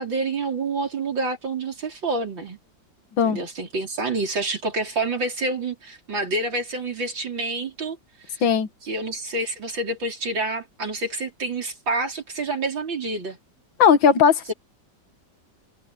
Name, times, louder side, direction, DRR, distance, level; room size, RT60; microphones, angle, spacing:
voice 1, 0.0-2.6 3.2-8.0 8.3-8.4 8.8-13.4 14.5-14.6, right 3 dB, 85° right, 5.5 m, -28 dB
voice 2, 13.8-14.5, left 6 dB, 85° left, 2.1 m, -17 dB
omnidirectional pair, 2.0 m